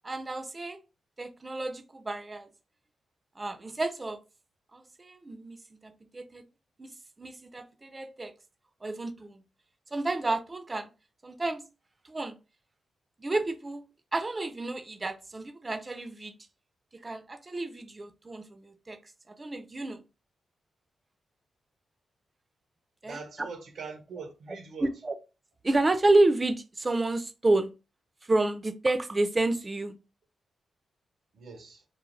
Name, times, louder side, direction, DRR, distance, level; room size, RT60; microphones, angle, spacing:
voice 1, 0.0-0.8 1.2-2.5 3.4-4.2 4.7-5.6 5.8-6.4 6.8-8.3 8.8-9.4 9.9-10.9 11.2-11.6 12.0-12.4 13.2-13.8 14.1-16.3 16.9-19.0 19.3-20.1 23.0-23.5 24.8-25.2 25.6-27.7 28.2-29.9, right 2 dB, 25° right, 0.4 m, -30 dB
voice 2, 23.1-24.9 31.3-31.8, right 4 dB, 75° right, 0.6 m, -42 dB
3.2 x 2.1 x 2.4 m
cardioid pair, 80°, 0 cm